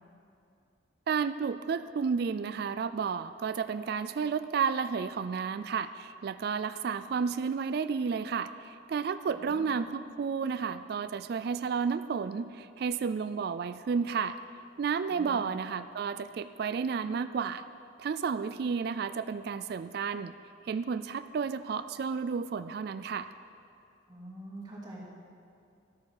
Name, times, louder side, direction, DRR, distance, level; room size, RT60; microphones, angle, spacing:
voice 1, 1.1-14.4 14.8-17.7 18.0-20.4 20.6-23.3, right 6 dB, 55° right, 12 dB, 0.3 m, -32 dB
voice 2, 9.3-9.7 15.1-15.4 24.1-25.0, right 1 dB, 25° right, -6 dB, 2.7 m, -45 dB
12.5 x 8.5 x 6.5 m, 2.5 s
head